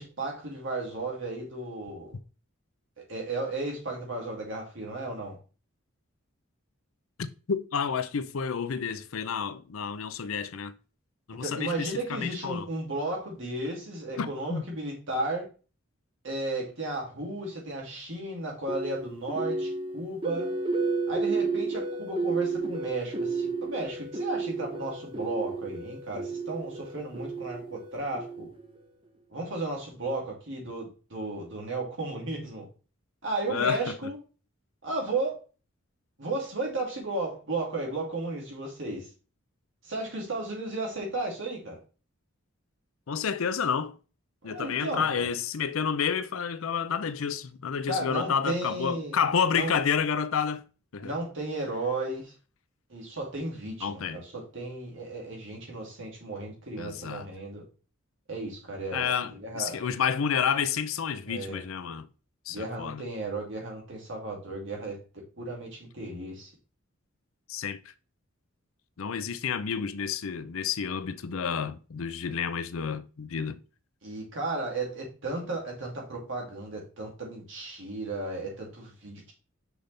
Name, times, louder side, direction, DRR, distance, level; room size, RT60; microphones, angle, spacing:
voice 1, 0.0-2.1 3.1-5.3 11.4-15.5 16.2-20.5 21.1-28.5 29.3-32.7 33.2-34.2 34.8-35.4 36.2-39.1 39.8-41.8 44.4-45.3 47.9-49.2 49.5-49.7 51.0-52.3 52.9-57.6 58.3-59.8 61.3-61.6 62.5-65.0 65.4-66.5 74.0-79.3, right 2 dB, 60° right, 2.6 m, -34 dB
voice 2, 7.5-10.7 11.3-12.7 14.2-14.7 33.5-34.0 43.1-44.0 44.4-50.6 50.9-51.1 53.8-54.2 56.8-57.3 58.9-62.1 62.5-63.0 67.5-67.8 69.0-73.6, left 6 dB, 75° left, 0.5 m, -30 dB
sound 1, 18.7-28.8, right 3 dB, 25° right, 0.9 m, -32 dB
6.1 x 5.2 x 3.3 m
head